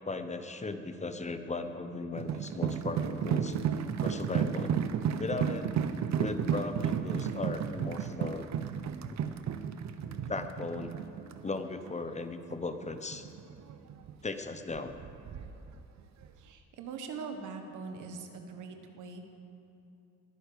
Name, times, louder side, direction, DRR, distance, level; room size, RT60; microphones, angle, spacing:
voice 1, 0.0-3.6 4.0-4.7 5.2-5.7 6.2-8.5 9.1-9.2 10.3-10.9 11.4-13.3 14.2-15.0, left 3 dB, 25° left, 9 dB, 0.9 m, -37 dB
sound 1, 2.2-12.2 12.5-12.6 12.8-14.1 14.5-15.7 16.0-16.3, right 8 dB, 65° right, 0.8 m, -33 dB
voice 2, 16.4-19.2, right 5 dB, 80° right, 5 dB, 1.5 m, -42 dB
21.0 x 9.8 x 5.1 m, 2.7 s
cardioid pair, 90°, 30 cm